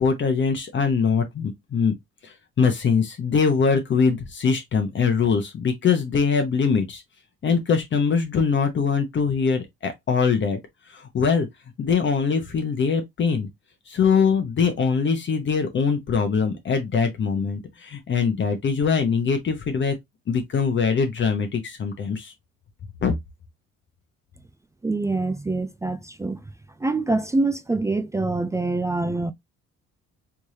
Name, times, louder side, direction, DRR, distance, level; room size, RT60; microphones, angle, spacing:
voice 1, 0.0-1.9 2.2-7.0 7.4-10.6 10.9-11.5 11.8-13.5 13.9-19.9 20.3-22.3 23.0-23.1, left 5 dB, 40° left, 0.9 m, -22 dB
voice 2, 24.8-26.4 26.8-29.3, right 3 dB, 10° right, 0.3 m, -25 dB
3.5 x 3.2 x 2.7 m
cardioid pair, 110°, 29 cm